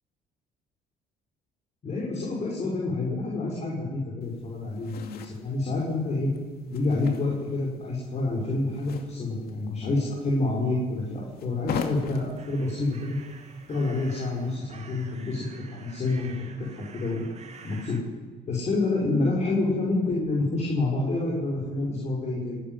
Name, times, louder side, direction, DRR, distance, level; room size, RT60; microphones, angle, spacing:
voice 1, 1.8-6.3 6.7-13.2 13.7-15.4 15.7-16.3 16.7-17.2 17.6-18.0 18.5-22.6, left 2 dB, 40° left, -3 dB, 6.3 m, -28 dB
sound 1, 4.2-14.6, left 6 dB, 65° left, 2.6 m, -42 dB
sound 2, 12.4-18.0, right 5 dB, 40° right, 2.7 m, -49 dB
29.5 x 13.5 x 9.6 m, 1.4 s
cardioid pair, 110°, 17 cm